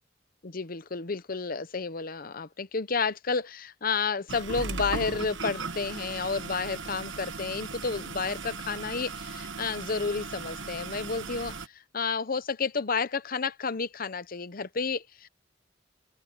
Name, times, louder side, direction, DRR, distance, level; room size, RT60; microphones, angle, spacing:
voice 1, 0.4-15.3, left 4 dB, 50° left, 0.8 m, -31 dB
sound 1, 4.3-11.7, right 4 dB, 80° right, 1.2 m, -37 dB
open air
head